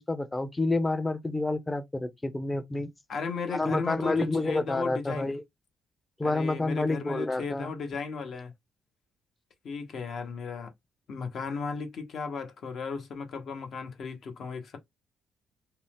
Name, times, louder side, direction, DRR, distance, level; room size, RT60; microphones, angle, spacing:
voice 1, 0.0-2.9 3.5-5.4 6.2-7.7, left 2 dB, 15° left, 0.5 m, -29 dB
voice 2, 3.1-5.3 6.2-8.5 9.6-10.7 11.1-14.8, left 4 dB, 60° left, 0.9 m, -35 dB
2.7 x 2.0 x 3.3 m
cardioid pair, 90°, 0 cm